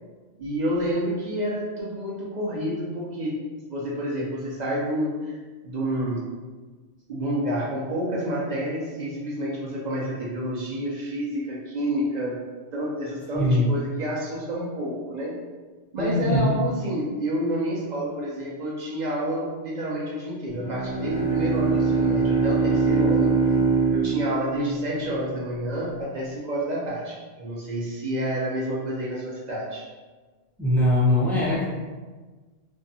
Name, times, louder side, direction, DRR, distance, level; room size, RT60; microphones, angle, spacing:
voice 1, 0.4-3.4 3.7-5.4 5.6-6.3 7.1-12.4 12.7-15.4 15.9-23.4 23.9-29.8, equal, 60° right, -4 dB, 0.4 m, -29 dB
voice 2, 13.3-13.7 16.0-16.5 30.6-31.6, left 1 dB, ahead, -8 dB, 0.4 m, -21 dB
Bowed string instrument, 20.5-25.3, right 4 dB, 85° left, 0.9 m, -23 dB
2.6 x 2.3 x 2.6 m, 1.3 s
omnidirectional pair, 1.2 m